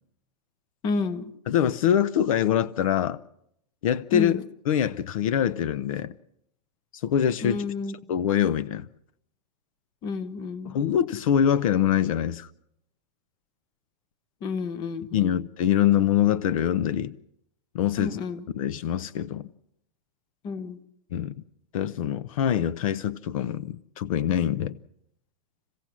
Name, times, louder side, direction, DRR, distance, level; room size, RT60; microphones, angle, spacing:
voice 1, 0.8-1.3 4.1-4.4 7.4-7.9 10.0-10.8 14.4-15.4 18.0-18.5 20.4-20.8, left 4 dB, 20° left, 0.9 m, -30 dB
voice 2, 1.5-3.2 3.8-6.1 6.9-7.6 8.1-8.9 10.6-12.5 15.1-17.2 17.7-18.2 18.5-19.5 21.1-21.3 21.7-24.8, left 10 dB, 55° left, 0.7 m, -24 dB
28.0 x 16.5 x 6.2 m
supercardioid pair, 175°, 21 cm